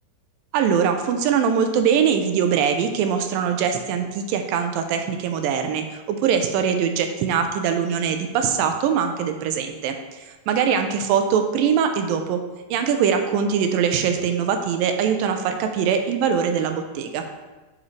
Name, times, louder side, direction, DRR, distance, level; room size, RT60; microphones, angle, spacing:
voice 1, 0.5-12.4 12.7-17.2, right 7 dB, 80° right, 6 dB, 2.2 m, -22 dB
7.4 x 5.3 x 3.2 m, 1.2 s
omnidirectional pair, 4.1 m